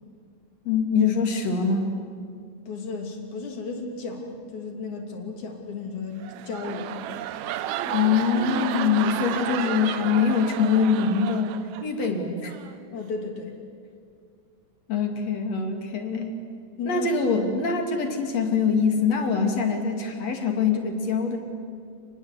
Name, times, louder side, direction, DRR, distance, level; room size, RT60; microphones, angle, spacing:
voice 1, 0.7-1.9 7.8-12.5 14.9-16.3 16.9-21.4, left 5 dB, 60° left, 4 dB, 3.6 m, -24 dB
voice 2, 2.7-7.1 12.9-13.5 16.8-17.1, left 4 dB, 90° left, 3 dB, 4.3 m, -34 dB
sound 1, 6.1-12.1 12.4-12.8, right 12 dB, 80° right, 2.1 m, -32 dB
29.0 x 20.5 x 8.3 m, 2.2 s
omnidirectional pair, 3.3 m